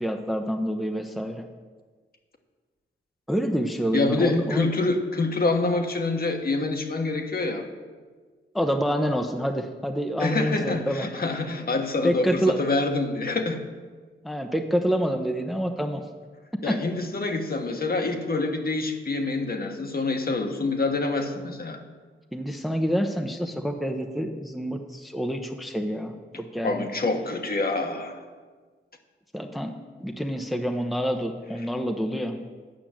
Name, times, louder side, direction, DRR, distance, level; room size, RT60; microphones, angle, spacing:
voice 1, 0.0-1.5 3.3-4.7 8.5-11.1 12.0-12.6 14.2-16.0 16.7-16.8 22.3-26.8 29.3-29.7 30.0-32.4, equal, ahead, 4 dB, 0.8 m, -27 dB
voice 2, 3.9-7.7 10.2-13.6 16.6-21.8 26.6-28.2, left 3 dB, 45° left, 4 dB, 1.3 m, -26 dB
9.1 x 5.8 x 7.5 m, 1.4 s
cardioid pair, 55°, 21 cm